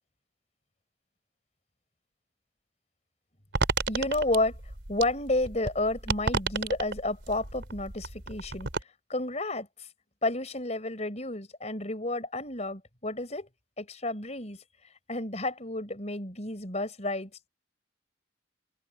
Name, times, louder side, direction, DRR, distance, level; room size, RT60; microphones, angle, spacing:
sound 1, 3.5-8.8, right 3 dB, 85° right, 3.3 m, -32 dB
voice 1, 3.9-4.6 4.9-8.7 9.1-9.7 10.2-13.5 13.8-14.6 15.1-17.5, left 2 dB, 40° left, 5.0 m, -31 dB
open air
head